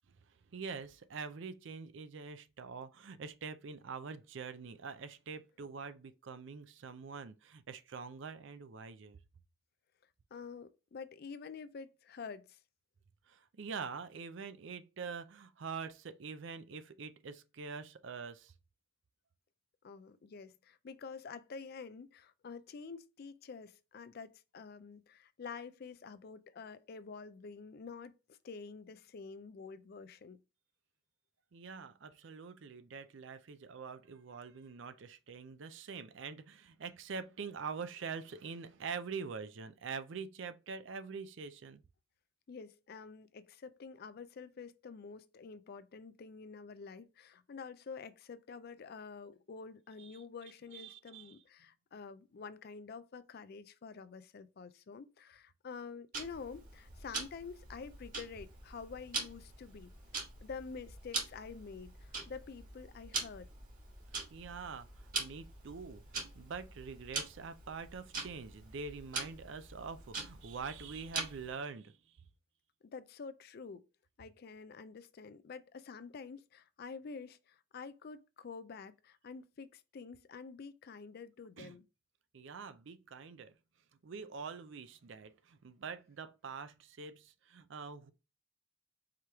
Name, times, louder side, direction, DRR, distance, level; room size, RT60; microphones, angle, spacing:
voice 1, 0.5-9.2 13.3-18.5 31.5-41.8 50.0-50.2 50.7-51.4 64.3-66.0 66.3-72.0 81.6-81.8 82.3-83.5 84.0-88.1, right 5 dB, 60° right, 0.4 m, -45 dB
voice 2, 10.3-12.6 19.8-30.4 42.5-63.5 72.9-73.8 74.2-81.9, left 5 dB, 50° left, 0.4 m, -48 dB
Tick-tock, 56.1-71.6, right 4 dB, 40° right, 1.5 m, -43 dB
4.9 x 3.0 x 3.4 m
head